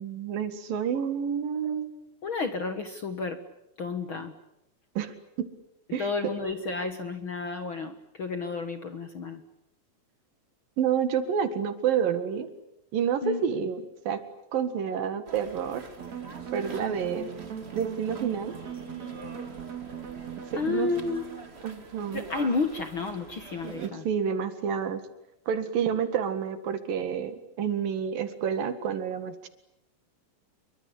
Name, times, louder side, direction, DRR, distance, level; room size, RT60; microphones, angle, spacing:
voice 1, 0.0-1.9 5.0-5.5 5.9-6.0 10.8-12.5 12.9-14.2 14.5-15.9 16.5-17.3 17.7-18.5 20.5-20.9 21.6-22.2 23.6-25.0 25.5-29.5, right 8 dB, 75° right, 10 dB, 3.6 m, -29 dB
voice 2, 2.2-3.4 3.8-4.4 5.9-9.4 13.2-13.4 20.5-21.2 22.1-24.1, left 4 dB, 50° left, 8 dB, 1.7 m, -31 dB
sound 1, 15.3-23.9, right 3 dB, 25° right, 1.6 m, -46 dB
sound 2, 16.0-21.5, right 8 dB, 50° right, 4.1 m, -39 dB
28.0 x 23.5 x 8.6 m, 0.82 s
omnidirectional pair, 4.1 m